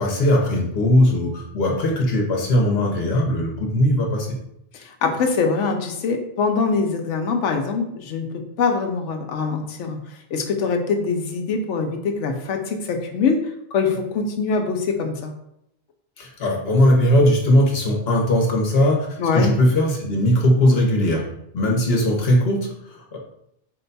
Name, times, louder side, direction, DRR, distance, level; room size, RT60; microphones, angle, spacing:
voice 1, 0.0-4.3 16.2-21.2 21.5-23.2, left 1 dB, 60° left, 0 dB, 1.1 m, -19 dB
voice 2, 4.7-10.0 10.3-13.4 13.7-15.3 19.2-19.5, left 4 dB, 90° left, 4 dB, 1.0 m, -23 dB
4.4 x 2.2 x 4.0 m, 0.77 s
omnidirectional pair, 1.2 m